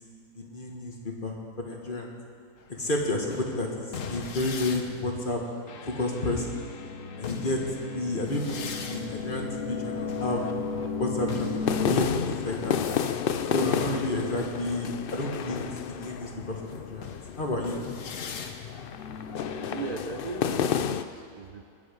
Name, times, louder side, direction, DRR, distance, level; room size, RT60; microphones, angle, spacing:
voice 1, 0.3-0.9 1.2-2.1 2.8-5.4 5.9-6.6 7.2-10.4 11.0-12.8 13.5-17.1 17.4-17.8, left 2 dB, 35° left, 0 dB, 1.8 m, -31 dB
sound 1, 2.6-14.8 15.5-20.0, left 4 dB, 60° left, 1.3 m, -37 dB
sound 2, 8.6-21.0, left 8 dB, 85° left, 0.4 m, -32 dB
voice 2, 19.7-21.6, right 5 dB, 55° right, 5 dB, 0.4 m, -38 dB
21.5 x 9.0 x 5.2 m, 2.4 s
omnidirectional pair, 1.6 m